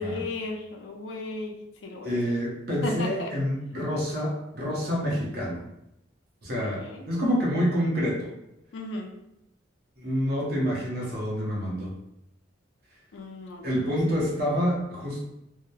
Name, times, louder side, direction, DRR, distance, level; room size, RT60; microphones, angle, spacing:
voice 1, 0.0-2.2 2.8-3.3 6.5-7.1 8.7-9.1 13.1-13.9, left 2 dB, 70° left, 3 dB, 0.4 m, -35 dB
voice 2, 2.0-5.6 6.4-6.8 7.1-8.3 10.0-11.9 13.6-15.2, equal, 55° right, -4 dB, 0.7 m, -27 dB
2.8 x 2.0 x 2.2 m, 0.84 s
head